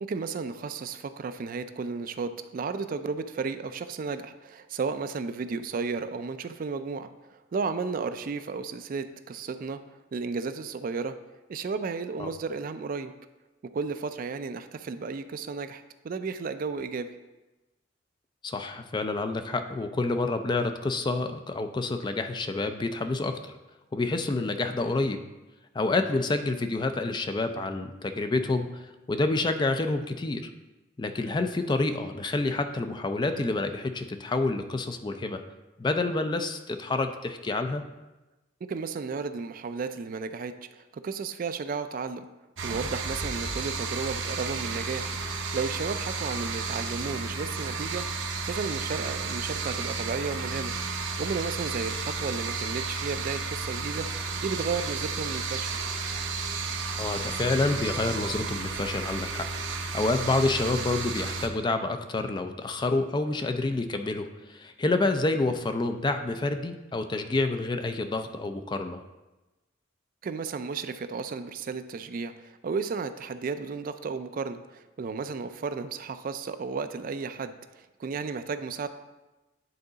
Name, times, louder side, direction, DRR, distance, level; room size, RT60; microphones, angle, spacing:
voice 1, 0.0-9.8 10.1-11.2 11.5-13.1 13.7-17.1 38.7-42.3 42.6-50.7 51.2-54.1 54.4-55.7 70.2-78.9, right 4 dB, 45° right, 10 dB, 0.3 m, -33 dB
voice 2, 18.4-23.5 23.9-25.2 25.7-30.5 31.0-35.4 35.8-37.8 57.0-59.5 59.9-69.0, left 2 dB, 25° left, 7 dB, 0.4 m, -28 dB
sound 1, 42.6-61.5, right 4 dB, 80° right, 0.8 m, -32 dB
9.6 x 3.8 x 3.9 m, 1.1 s
head